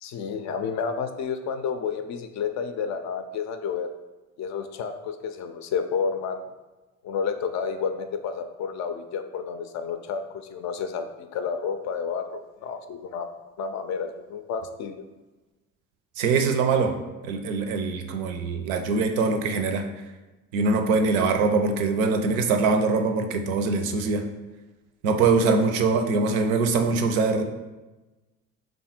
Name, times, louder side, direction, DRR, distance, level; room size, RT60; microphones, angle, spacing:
voice 1, 0.0-3.9 4.4-6.4 7.0-10.2 10.5-13.3 13.6-15.0, left 6 dB, 45° left, 8 dB, 0.4 m, -30 dB
voice 2, 16.2-17.0 17.2-19.9 20.5-24.3 25.0-27.4, right 4 dB, 75° right, 6 dB, 0.5 m, -23 dB
3.3 x 2.1 x 4.3 m, 1.1 s
hypercardioid pair, 55°, 41 cm